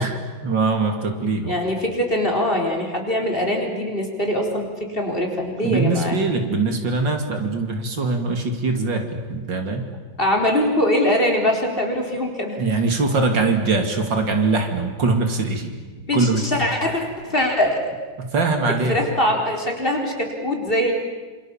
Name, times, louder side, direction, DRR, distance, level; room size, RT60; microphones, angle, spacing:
voice 1, 0.0-1.5 5.6-9.8 12.6-15.7 16.1-16.4 18.2-19.0, right 3 dB, 70° right, 5 dB, 3.3 m, -22 dB
voice 2, 1.4-6.2 10.2-12.6 16.1-17.9 18.7-20.9, left 1 dB, 25° left, 1 dB, 4.4 m, -22 dB
27.5 x 27.0 x 7.3 m, 1.3 s
omnidirectional pair, 2.1 m